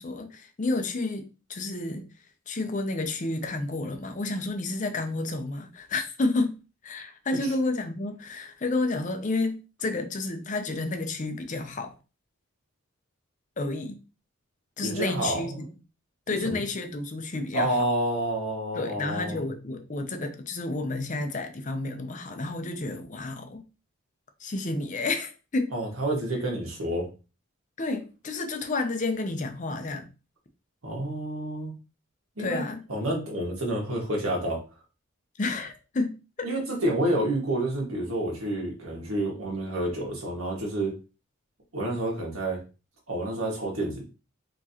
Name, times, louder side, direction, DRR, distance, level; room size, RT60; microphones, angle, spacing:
voice 1, 0.0-2.1 2.5-6.5 6.8-11.9 13.6-14.0 14.8-15.5 16.3-17.8 18.7-23.6 24.4-25.7 27.8-30.1 32.4-32.8 35.4-36.5, left 2 dB, 35° left, 0.6 m, -30 dB
voice 2, 14.8-15.6 16.4-16.6 17.5-19.4 25.7-27.1 30.8-31.7 32.4-32.6 32.9-34.6 36.4-40.9 41.7-42.6 43.1-44.0, right 1 dB, 80° right, 1.7 m, -29 dB
4.6 x 3.1 x 2.8 m
head